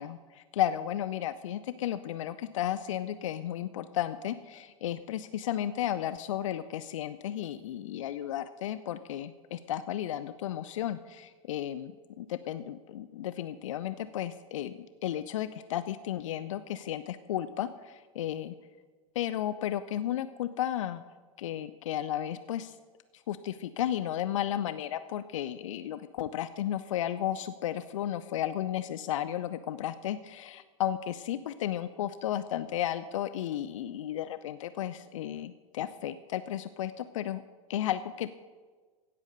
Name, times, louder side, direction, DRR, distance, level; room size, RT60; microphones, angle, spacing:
voice 1, 0.0-11.9 12.2-18.5 19.2-21.0 21.4-22.7 23.3-37.4 37.7-38.3, left 11 dB, 60° left, 13 dB, 0.6 m, -33 dB
16.5 x 8.5 x 6.5 m, 1.4 s
figure-of-eight pair, 90°, 19 cm